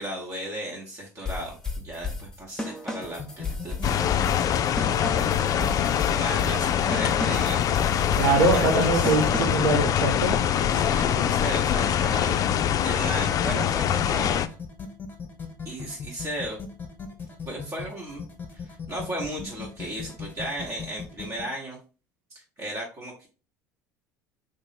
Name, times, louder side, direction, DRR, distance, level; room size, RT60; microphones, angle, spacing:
voice 1, 0.0-4.3 5.4-7.6 8.5-9.3 10.7-12.4 12.8-14.5 15.6-16.6 17.4-18.2 18.5-21.8 22.3-23.3, right 1 dB, 35° right, 1.2 m, -35 dB
sound 1, 1.2-9.7, left 3 dB, 5° left, 0.8 m, -34 dB
sound 2, 3.0-21.4, left 6 dB, 20° left, 1.2 m, -38 dB
sound 3, 3.8-14.5, left 9 dB, 40° left, 0.3 m, -24 dB
voice 2, 8.2-10.4, right 3 dB, 75° right, 1.2 m, -23 dB
3.0 x 2.6 x 4.1 m
hypercardioid pair, 70°, 9 cm